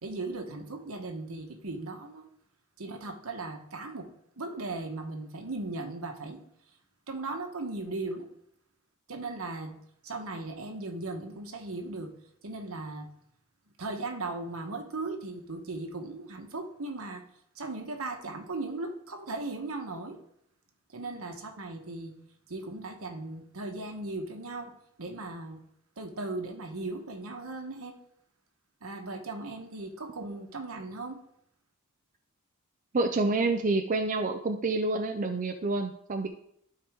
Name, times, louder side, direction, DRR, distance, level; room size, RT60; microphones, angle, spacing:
voice 1, 0.0-2.2 2.8-4.1 4.4-6.4 7.1-8.3 9.1-9.7 10.0-12.1 12.4-13.1 13.8-17.2 17.5-20.2 20.9-22.1 22.5-24.7 25.0-25.6 26.0-28.0 28.8-31.2, right 2 dB, 75° right, 5 dB, 1.2 m, -37 dB
voice 2, 32.9-36.3, right 3 dB, 35° right, 5 dB, 0.5 m, -28 dB
12.0 x 4.7 x 3.6 m, 0.71 s
head